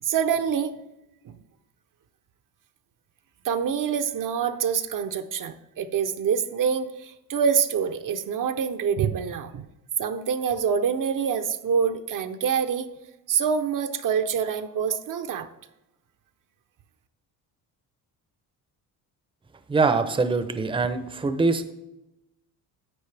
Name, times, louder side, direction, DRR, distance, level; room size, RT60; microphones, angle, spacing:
voice 1, 0.0-0.7 1.2-1.3 3.4-9.6 10.0-12.9 13.3-15.5, right 7 dB, 50° right, 8 dB, 0.7 m, -26 dB
voice 2, 19.7-21.7, right 4 dB, 15° right, 10 dB, 0.7 m, -23 dB
10.5 x 7.8 x 3.3 m, 0.91 s
cardioid pair, 100°, 41 cm